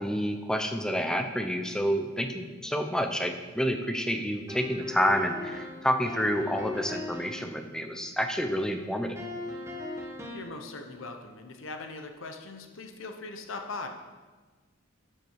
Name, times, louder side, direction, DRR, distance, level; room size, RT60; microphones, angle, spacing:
voice 1, 0.0-9.2, equal, 5° left, 6 dB, 0.8 m, -29 dB
sound 1, 4.5-7.5 9.2-10.6, left 2 dB, 15° right, 1.3 m, -38 dB
voice 2, 10.3-13.9, left 3 dB, 70° left, 5 dB, 1.1 m, -40 dB
12.0 x 7.8 x 4.8 m, 1.4 s
head